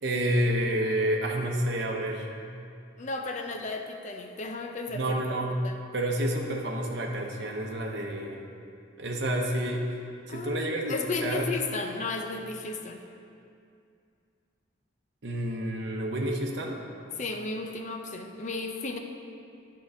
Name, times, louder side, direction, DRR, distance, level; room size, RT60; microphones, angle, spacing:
voice 1, 0.0-2.3 4.9-5.6 5.9-8.4 9.0-9.9 10.3-11.5 15.2-16.8, right 1 dB, 60° right, -1 dB, 0.9 m, -29 dB
voice 2, 3.0-5.0 5.6-5.7 10.3-13.0 17.2-19.0, left 3 dB, 40° left, 4 dB, 0.6 m, -34 dB
9.7 x 3.8 x 6.3 m, 2.5 s
head